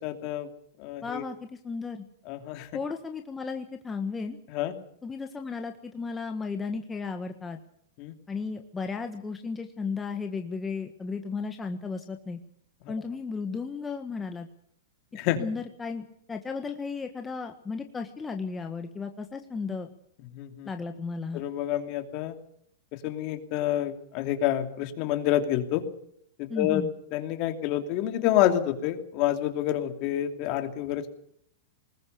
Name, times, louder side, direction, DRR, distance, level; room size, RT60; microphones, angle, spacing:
voice 1, 0.0-0.5 0.8-1.2 2.3-2.7 4.5-4.7 8.0-8.1 15.1-15.4 20.3-20.7 21.3-22.3 22.9-25.8 26.4-26.8 27.1-31.1, left 12 dB, 45° left, 7 dB, 2.8 m, -28 dB
voice 2, 1.0-2.0 2.7-4.4 5.0-7.6 8.3-12.4 12.9-14.5 15.4-19.9 20.6-21.4 26.5-26.9, left 4 dB, 15° left, 5 dB, 1.5 m, -34 dB
21.0 x 19.5 x 6.9 m, 0.70 s
hypercardioid pair, 130°, 0 cm